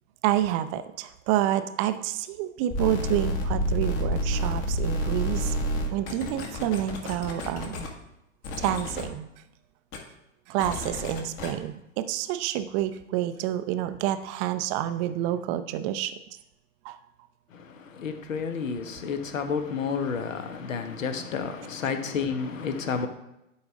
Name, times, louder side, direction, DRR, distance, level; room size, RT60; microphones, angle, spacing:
voice 1, 0.2-5.5 5.9-7.9 8.6-9.3 10.5-16.1 16.8-17.0, right 12 dB, 25° right, 0.5 m, -28 dB
sound 1, 2.7-7.9 8.4-9.1 9.9-10.0 10.6-11.5, equal, 35° left, 1.7 m, -29 dB
voice 2, 17.5-23.1, left 6 dB, 70° left, 1.2 m, -31 dB
11.5 x 4.8 x 3.6 m
figure-of-eight pair, 105°, 41 cm